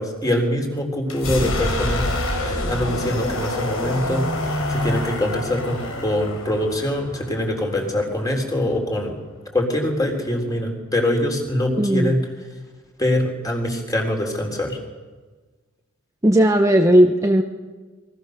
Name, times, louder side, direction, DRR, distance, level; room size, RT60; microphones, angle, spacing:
voice 1, 0.0-9.1 9.5-12.2 13.0-14.8, left 1 dB, 15° left, 2 dB, 4.1 m, -24 dB
sound 1, 1.0-8.8, left 1 dB, 80° left, 5.2 m, -27 dB
voice 2, 11.8-12.1 16.2-17.4, equal, 15° right, 3 dB, 1.1 m, -16 dB
28.5 x 23.5 x 6.7 m, 1.4 s
head